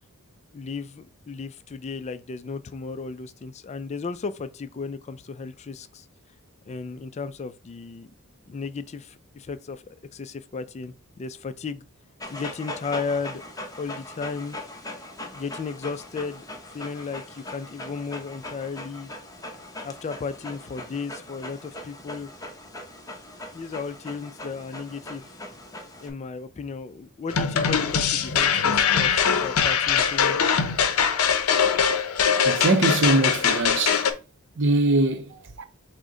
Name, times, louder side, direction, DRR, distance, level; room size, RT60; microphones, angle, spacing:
voice 1, 0.5-6.1 6.7-8.1 8.5-11.8 12.3-13.4 13.8-14.6 15.3-19.1 19.8-22.3 23.5-25.3 26.0-30.5, left 4 dB, 30° left, 0.3 m, -34 dB
Dog, 12.2-26.1, left 1 dB, 15° left, 0.8 m, -40 dB
sound 1, 27.3-34.1, left 7 dB, 85° left, 0.6 m, -22 dB
voice 2, 32.4-34.1 34.6-35.6, right 2 dB, 60° right, 0.6 m, -22 dB
6.2 x 2.1 x 3.8 m
head